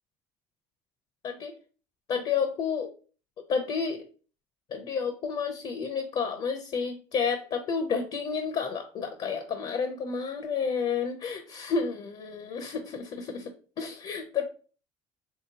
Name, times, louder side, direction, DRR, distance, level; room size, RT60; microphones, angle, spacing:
voice 1, 2.1-2.9 3.5-4.0 4.7-14.4, left 5 dB, 50° left, 4 dB, 0.6 m, -30 dB
3.1 x 2.8 x 2.8 m, 0.39 s
supercardioid pair, 85°, 13 cm